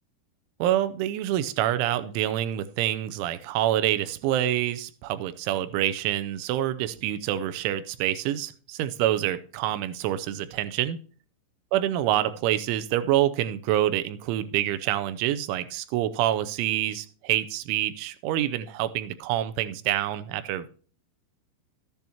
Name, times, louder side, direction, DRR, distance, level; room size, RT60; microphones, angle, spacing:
voice 1, 0.6-11.0 11.7-20.7, right 12 dB, 90° right, 12 dB, 3.1 m, -27 dB
13.5 x 10.5 x 2.9 m, 0.42 s
omnidirectional pair, 5.4 m